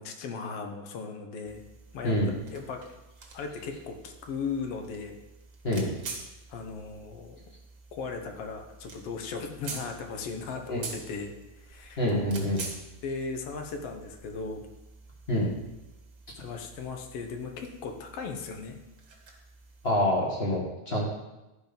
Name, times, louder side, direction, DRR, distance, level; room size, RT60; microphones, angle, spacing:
voice 1, 0.0-1.6 1.9-2.2 2.5-2.8 3.3-5.2 6.5-7.4 7.9-11.3 11.6-12.1 13.0-14.7 16.4-18.8, left 5 dB, 65° left, 4 dB, 1.8 m, -37 dB
sound 1, 1.4-19.9, right 4 dB, 45° right, 1.8 m, -47 dB
voice 2, 12.0-12.6 15.3-15.5 19.8-21.0, left 1 dB, 25° left, -3 dB, 1.5 m, -26 dB
12.0 x 5.2 x 5.4 m, 1.0 s
omnidirectional pair, 3.5 m